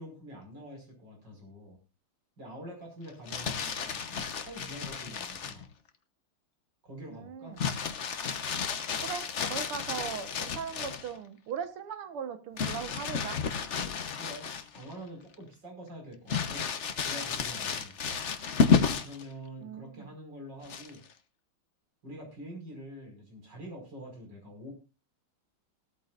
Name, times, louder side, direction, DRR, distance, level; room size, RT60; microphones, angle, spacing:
voice 1, 0.0-1.8 2.4-5.7 6.8-7.6 14.2-16.7 17.0-18.2 19.0-21.0 22.0-24.7, equal, 55° right, 2 dB, 6.1 m, -46 dB
Crumpling crinkling, 3.1-5.6 7.6-11.1 12.6-14.9 15.3-15.4 16.3-19.2 20.6-21.1, left 6 dB, 45° left, 1.0 m, -31 dB
voice 2, 7.1-7.6 9.0-13.4 19.6-20.1, right 7 dB, 85° right, 9 dB, 2.2 m, -39 dB
17.5 x 13.5 x 2.5 m, 0.29 s
omnidirectional pair, 2.4 m